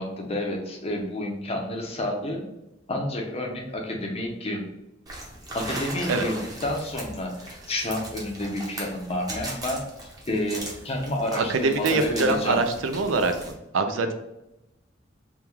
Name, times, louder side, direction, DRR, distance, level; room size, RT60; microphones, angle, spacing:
voice 1, 0.0-2.4 2.9-4.7 5.5-12.6, left 1 dB, 35° left, 1 dB, 0.7 m, -30 dB
sound 1, 5.1-13.5, right 1 dB, 20° right, 0.8 m, -38 dB
voice 2, 11.3-14.1, right 3 dB, 90° right, 7 dB, 0.5 m, -24 dB
3.6 x 2.3 x 4.4 m, 0.92 s
head